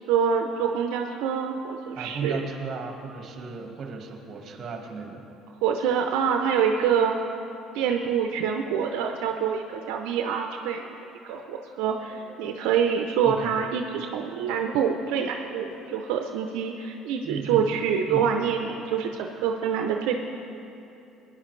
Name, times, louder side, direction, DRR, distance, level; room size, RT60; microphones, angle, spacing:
voice 1, 0.0-2.3 5.6-7.1 7.7-10.9 11.2-20.2, right 7 dB, 85° right, 3 dB, 0.6 m, -26 dB
voice 2, 1.9-5.2 13.2-13.6 17.2-17.6 18.1-18.3, right 4 dB, 45° right, 3 dB, 1.6 m, -35 dB
sound 1, 8.9-9.2 9.7-10.0 11.4-11.7 12.1-12.4 13.6-13.9 14.5-14.8 15.7-16.0 18.3-18.5 19.1-19.3, left 2 dB, 45° left, 2.2 m, -48 dB
17.0 x 10.0 x 3.2 m, 2.8 s
cardioid pair, 105°, 0 cm